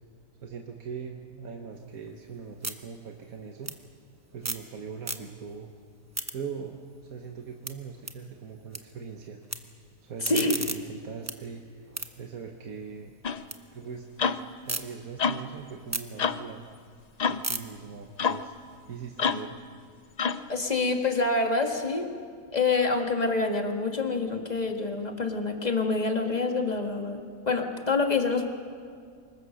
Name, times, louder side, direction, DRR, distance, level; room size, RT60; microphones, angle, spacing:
voice 1, 0.4-3.7 4.3-5.7 6.3-9.4 10.0-11.9 12.2-13.1 13.7-14.0 14.7-16.6 17.3-18.5 18.9-19.5, right 6 dB, 70° right, 3 dB, 1.6 m, -41 dB
Bug Zapper Many medium zaps, 1.7-4.7 5.0-5.6 5.9-8.8 9.1-9.6 10.0-13.6 14.0-14.8 15.3-19.4, right 2 dB, 15° right, 0.8 m, -38 dB
voice 2, 10.2-10.5 20.5-22.1 22.5-28.5, left 3 dB, 25° left, 4 dB, 1.9 m, -26 dB
sound 1, 13.2-13.4 14.2-14.4 15.2-15.4 16.2-16.4 17.2-17.4 18.2-18.4 19.2-19.5 20.2-20.5, left 6 dB, 85° left, 0.3 m, -27 dB
25.5 x 21.5 x 6.5 m, 2.2 s
omnidirectional pair, 1.6 m